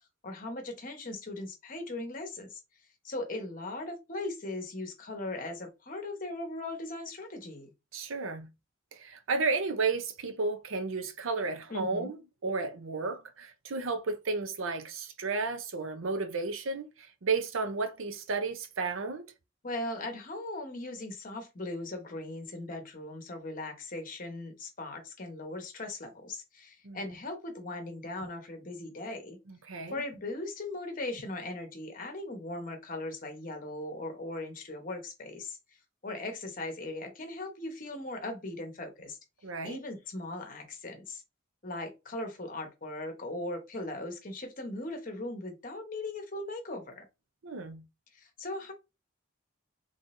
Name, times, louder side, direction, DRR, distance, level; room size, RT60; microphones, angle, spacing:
voice 1, 0.2-2.6 3.0-7.7 11.7-12.1 19.6-29.4 29.9-35.6 36.0-39.2 39.6-41.2 41.6-47.0 48.1-48.7, left 2 dB, 40° left, 1.0 m, -39 dB
voice 2, 7.9-8.5 8.9-12.2 12.4-19.3 26.8-27.0 29.5-30.0 39.4-39.8 47.4-47.8, right 4 dB, 80° right, 0.7 m, -33 dB
3.7 x 3.2 x 2.6 m
head